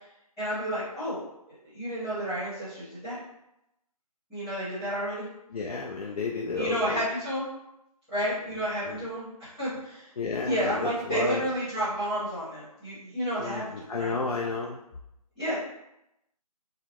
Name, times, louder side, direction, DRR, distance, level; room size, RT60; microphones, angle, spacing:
voice 1, 0.4-3.2 4.3-5.2 6.5-7.5 8.1-10.1 10.4-14.1 15.3-15.6, equal, ahead, -15 dB, 1.1 m, -31 dB
voice 2, 5.5-7.0 8.9-9.1 10.2-11.5 13.4-14.8, left 4 dB, 70° left, -1 dB, 0.5 m, -32 dB
3.9 x 2.1 x 2.9 m, 0.83 s
figure-of-eight pair, 170°, 20 cm